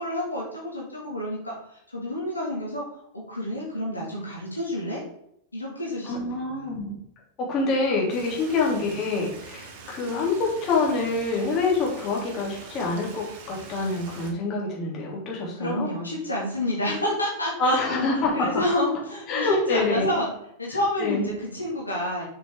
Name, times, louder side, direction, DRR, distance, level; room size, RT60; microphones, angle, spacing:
voice 1, 0.0-2.8 3.1-5.0 5.5-6.7 8.7-8.9 15.6-18.1 18.3-20.3 20.6-22.3, left 1 dB, 80° left, -3 dB, 2.7 m, -29 dB
voice 2, 6.0-7.0 7.4-15.9 17.6-18.6 19.3-20.0 21.0-21.3, left 3 dB, 35° left, -3 dB, 3.3 m, -26 dB
Stream, 8.1-14.3, right 4 dB, 50° right, 1.8 m, -44 dB
6.9 x 6.5 x 4.9 m, 0.73 s
figure-of-eight pair, 90°, 0 cm